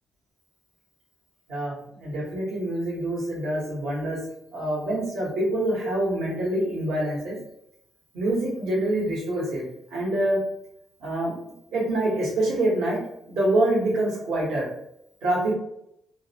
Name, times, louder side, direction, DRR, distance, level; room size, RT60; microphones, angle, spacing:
voice 1, 1.5-4.2 4.5-7.4 8.1-9.6 9.9-10.4 11.0-11.4 11.7-13.0 13.3-14.6 15.2-15.5, right 1 dB, 85° right, -6 dB, 1.1 m, -25 dB
2.5 x 2.0 x 2.7 m, 0.77 s
cardioid pair, 90°, 0 cm